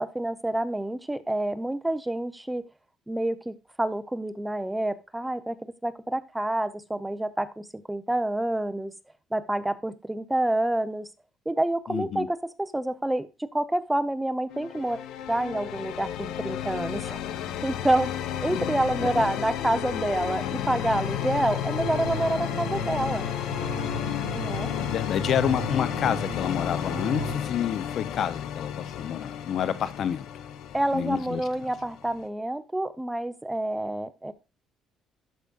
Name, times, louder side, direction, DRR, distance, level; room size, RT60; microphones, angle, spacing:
voice 1, 0.0-2.6 3.1-8.9 9.3-11.1 11.5-15.0 15.3-17.2 17.6-18.1 18.4-23.2 24.3-24.7 30.7-34.3, right 1 dB, 5° right, 0.4 m, -28 dB
voice 2, 11.9-12.3 18.5-18.6 19.0-19.3 24.8-30.3 30.9-31.4, left 9 dB, 50° left, 0.5 m, -29 dB
sound 1, 14.5-32.3, left 10 dB, 85° left, 0.8 m, -32 dB
sound 2, 21.8-27.4, right 6 dB, 65° right, 0.9 m, -37 dB
12.0 x 4.9 x 2.3 m
cardioid pair, 145°, 0 cm